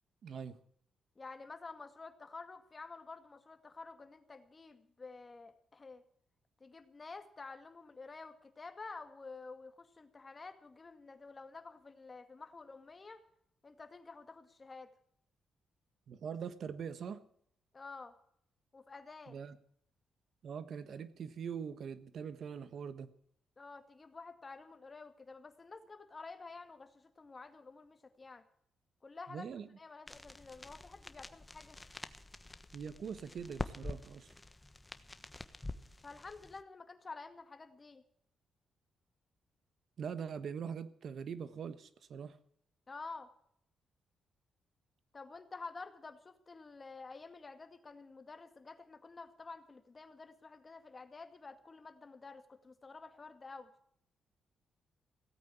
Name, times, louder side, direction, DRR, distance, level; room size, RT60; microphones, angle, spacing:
voice 1, 0.2-0.6 16.1-17.2 19.3-19.6 20.4-23.1 29.3-29.7 32.7-34.3 40.0-42.4, right 7 dB, 65° right, 13 dB, 1.3 m, -42 dB
voice 2, 1.2-6.0 6.6-13.2 13.6-14.9 17.7-18.1 18.7-19.4 23.6-28.4 29.0-29.5 29.8-31.8 36.0-38.0 42.9-43.3 45.1-53.7, left 4 dB, 30° left, 8 dB, 2.1 m, -50 dB
sound 1, 30.1-36.6, left 2 dB, 15° left, 1.2 m, -47 dB
17.0 x 8.7 x 8.4 m, 0.67 s
cardioid pair, 85°, 0 cm